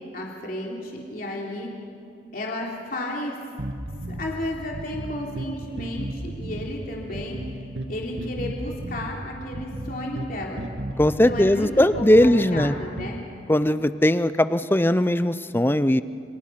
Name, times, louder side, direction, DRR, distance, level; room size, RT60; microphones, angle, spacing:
voice 1, 0.1-1.7 2.3-3.4 4.1-7.4 7.9-10.6 11.2-13.2, left 1 dB, 50° left, -2 dB, 3.4 m, -33 dB
sound 1, 3.6-13.2, right 1 dB, 80° right, 1.8 m, -35 dB
voice 2, 11.0-12.8 13.5-16.0, left 1 dB, 10° left, 13 dB, 0.5 m, -19 dB
29.0 x 25.5 x 5.9 m, 2.4 s
head